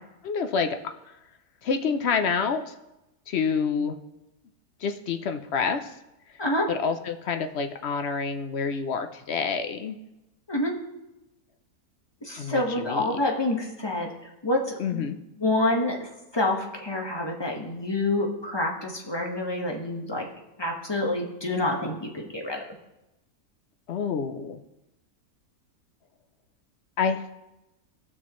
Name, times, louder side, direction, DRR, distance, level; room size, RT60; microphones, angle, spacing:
voice 1, 0.2-0.8 1.6-2.7 3.3-3.9 4.8-5.9 6.7-10.0 12.4-13.2 14.8-15.2 23.9-24.6 27.0-27.3, left 5 dB, 60° left, 7 dB, 0.8 m, -28 dB
voice 2, 12.2-14.1 14.4-15.1 15.4-20.3 20.6-22.6, left 1 dB, 20° left, 0 dB, 1.3 m, -27 dB
18.5 x 6.2 x 3.1 m, 0.94 s
omnidirectional pair, 1.5 m